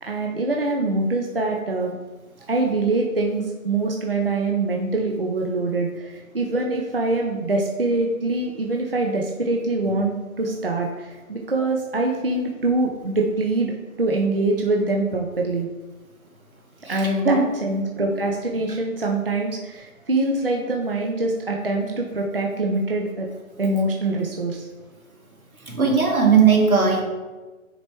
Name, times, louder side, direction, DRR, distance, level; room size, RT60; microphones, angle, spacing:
voice 1, 0.0-2.0 2.5-15.7 16.9-23.3 23.6-24.7, right 2 dB, 45° right, 0 dB, 0.6 m, -24 dB
voice 2, 16.8-17.4 25.7-27.0, right 5 dB, 85° right, 0 dB, 2.3 m, -18 dB
6.5 x 4.5 x 4.4 m, 1.2 s
hypercardioid pair, 180°, 42 cm